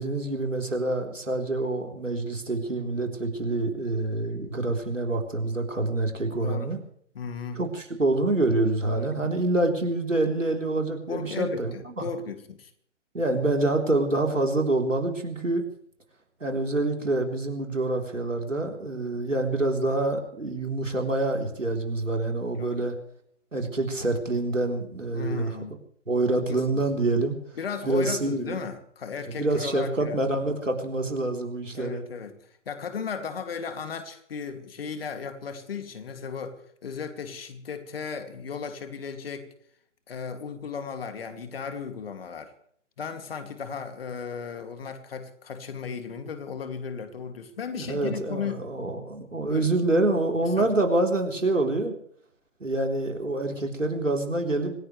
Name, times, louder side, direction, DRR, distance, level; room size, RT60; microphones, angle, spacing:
voice 1, 0.0-6.8 7.6-12.1 13.1-15.6 16.4-22.9 23.5-25.5 26.1-27.4 27.9-28.6 29.3-32.0 47.7-51.9 52.6-54.7, right 2 dB, 85° right, 3 dB, 4.0 m, -26 dB
voice 2, 6.4-6.7 7.1-7.6 8.9-9.1 11.1-12.7 22.5-22.8 25.1-25.7 26.5-26.8 27.5-30.2 31.7-32.3 32.7-39.5 40.1-42.5 43.0-48.7 49.5-49.7 50.4-50.7, left 6 dB, 50° left, 8 dB, 2.6 m, -35 dB
26.0 x 16.5 x 3.3 m, 0.63 s
figure-of-eight pair, 130°, 37 cm